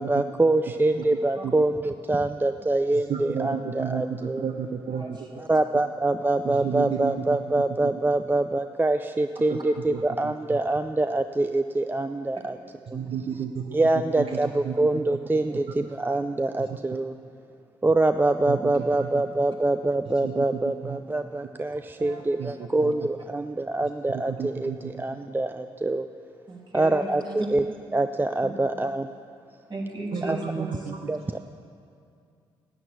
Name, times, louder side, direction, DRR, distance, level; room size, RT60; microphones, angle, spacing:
voice 1, 0.0-4.4 5.4-12.6 12.9-13.0 13.7-17.2 17.8-26.1 26.7-27.6 27.9-29.1 30.2-30.4 31.1-31.5, right 2 dB, 15° right, 9 dB, 0.4 m, -25 dB
voice 2, 3.1-5.2 6.4-7.4 7.8-7.9 9.5-9.6 9.9-10.6 12.9-13.8 14.2-14.8 16.7-16.8 18.5-19.1 20.2-21.0 22.4-22.9 24.1-24.9 30.1-31.0, right 7 dB, 55° right, 3 dB, 0.8 m, -32 dB
voice 3, 4.9-5.5 12.3-12.5 13.0-13.1 15.5-15.6 21.7-22.2 22.8-22.9 25.0-25.2 26.5-27.5 28.4-28.5 29.7-30.9, right 2 dB, 40° right, -2 dB, 2.8 m, -37 dB
10.5 x 8.9 x 8.2 m, 2.4 s
hypercardioid pair, 45°, 12 cm